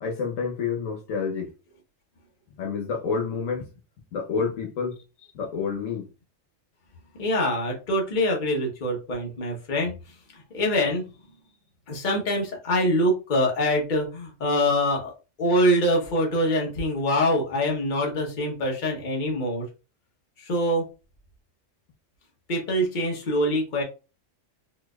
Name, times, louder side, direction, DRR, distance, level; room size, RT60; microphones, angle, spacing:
voice 1, 0.0-1.5 2.6-3.7 4.1-5.0 5.3-6.1, left 5 dB, 85° left, 1.2 m, -28 dB
voice 2, 7.2-9.9 10.5-11.1 11.9-15.1 15.4-19.6 20.4-20.8 22.5-23.8, equal, 40° left, 1.1 m, -24 dB
4.3 x 2.6 x 2.2 m
omnidirectional pair, 1.3 m